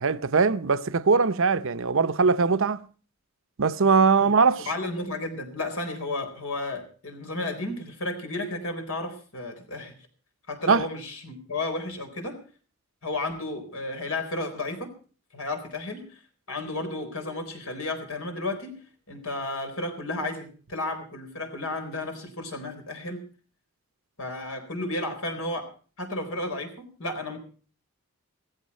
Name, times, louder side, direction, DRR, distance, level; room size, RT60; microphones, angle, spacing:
voice 1, 0.0-2.8 3.6-4.7 10.7-10.8, right 4 dB, 65° right, 0.8 m, -21 dB
voice 2, 4.7-9.9 10.5-12.4 13.0-14.9 15.3-16.2 16.5-18.8 19.1-23.2 24.2-25.7 26.0-27.4, left 2 dB, 70° left, 4.2 m, -33 dB
17.0 x 15.0 x 4.3 m
head